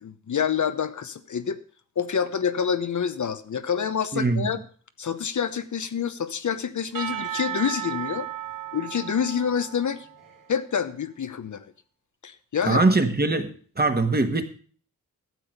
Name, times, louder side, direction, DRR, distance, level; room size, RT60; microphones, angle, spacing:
voice 1, 0.0-1.6 2.0-4.6 5.0-8.3 8.7-10.1 10.5-11.7 12.2-12.8, left 7 dB, 60° left, 1.0 m, -27 dB
voice 2, 4.1-4.5 12.6-14.4, right 3 dB, 30° right, 1.6 m, -22 dB
Percussion / Church bell, 6.9-10.6, right 11 dB, 70° right, 2.6 m, -34 dB
12.5 x 7.8 x 6.6 m
wide cardioid pair, 115°, 34 cm